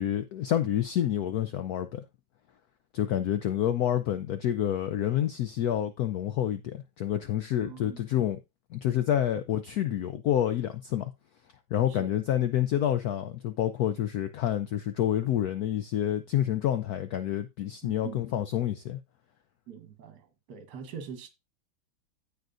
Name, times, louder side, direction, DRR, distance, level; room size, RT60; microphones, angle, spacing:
voice 1, 0.0-2.0 2.9-8.4 8.7-11.1 11.7-19.0, left 11 dB, 75° left, 0.8 m, -28 dB
voice 2, 7.6-8.0 11.9-12.1 17.8-18.2 19.7-21.3, right 7 dB, 55° right, 1.7 m, -43 dB
15.5 x 5.2 x 2.5 m
omnidirectional pair, 2.2 m